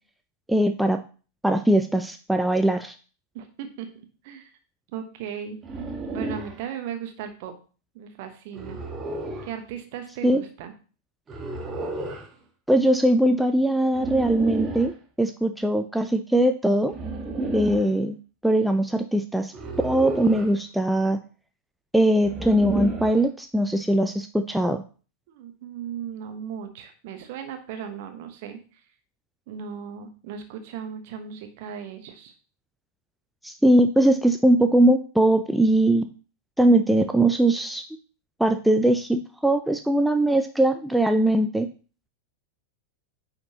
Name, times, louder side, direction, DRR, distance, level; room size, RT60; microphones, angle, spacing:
voice 1, 0.5-1.0 1.4-2.9 10.2-10.4 12.7-14.9 15.2-16.9 17.5-18.2 18.4-19.5 19.8-21.2 21.9-24.8 33.4-36.1 36.6-37.8 38.4-41.7, right 1 dB, ahead, 7 dB, 0.4 m, -21 dB
voice 2, 3.3-3.9 4.2-4.5 4.9-5.6 6.1-7.5 7.9-8.8 9.4-10.7 25.3-28.8 29.5-32.3, right 8 dB, 50° right, 6 dB, 1.1 m, -36 dB
sound 1, 5.6-6.6 8.5-9.5 11.3-12.3 13.9-14.9 16.9-17.9 19.5-20.6 22.2-23.2, right 2 dB, 20° right, 1.3 m, -32 dB
9.4 x 4.3 x 2.9 m, 0.37 s
figure-of-eight pair, 90°, 0 cm